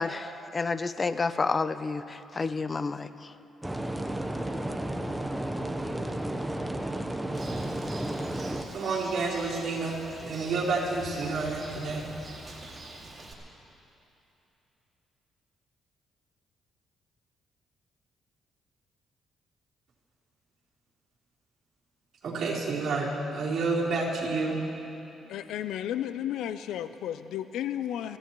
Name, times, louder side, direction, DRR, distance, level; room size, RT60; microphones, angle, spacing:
voice 1, 0.0-3.1, left 4 dB, 30° left, 13 dB, 0.5 m, -30 dB
sound 1, 3.6-8.6, right 1 dB, 10° right, 0.9 m, -32 dB
Bird, 7.3-13.3, right 2 dB, 30° right, 2.2 m, -45 dB
voice 2, 8.4-12.1 22.2-24.6, right 3 dB, 65° right, -6 dB, 3.9 m, -30 dB
voice 3, 25.3-28.2, left 11 dB, 85° left, 12 dB, 0.4 m, -33 dB
24.0 x 16.5 x 3.1 m, 3.0 s
cardioid pair, 90°, 0 cm